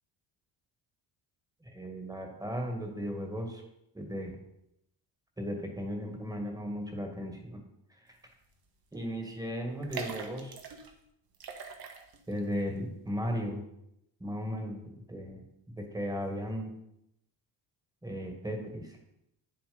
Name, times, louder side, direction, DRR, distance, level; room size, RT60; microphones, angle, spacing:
voice 1, 1.6-3.6 3.9-4.4 5.4-7.6 7.9-8.2 8.9-10.6 12.3-13.6 14.2-15.4 15.8-16.7 18.0-19.0, equal, 10° right, 3 dB, 2.2 m, -36 dB
sound 1, 8.4-8.7 8.9-9.0 9.7-10.9 11.3-12.4 12.7-12.8, right 6 dB, 55° right, 1.8 m, -42 dB
9.3 x 7.5 x 5.4 m, 0.79 s
cardioid pair, 130°, 44 cm